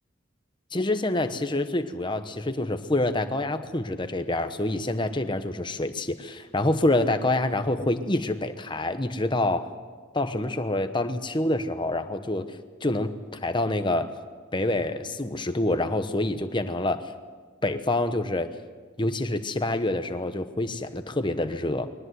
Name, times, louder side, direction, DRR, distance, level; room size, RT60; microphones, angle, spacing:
voice 1, 0.7-9.7 10.1-13.1 13.4-14.1 14.5-17.0 17.6-18.5 19.0-21.9, left 2 dB, 25° left, 9 dB, 1.0 m, -27 dB
22.0 x 19.0 x 8.1 m, 1.5 s
head